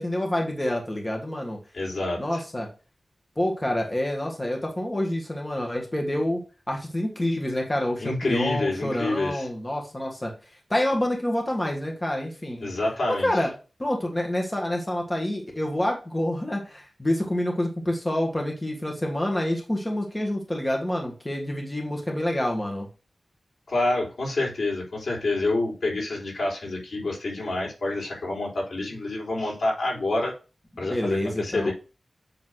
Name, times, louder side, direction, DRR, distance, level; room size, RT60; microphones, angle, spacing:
voice 1, 0.0-1.6 2.2-2.7 3.4-6.4 6.7-10.3 10.7-12.7 13.1-13.5 13.8-22.9 30.8-31.7, left 1 dB, 20° left, 0 dB, 1.6 m, -27 dB
voice 2, 1.7-2.4 8.0-9.5 12.6-13.5 23.7-30.3 30.8-31.7, left 2 dB, 80° left, -2 dB, 3.3 m, -27 dB
7.8 x 3.3 x 6.2 m, 0.33 s
wide cardioid pair, 100°, 0 cm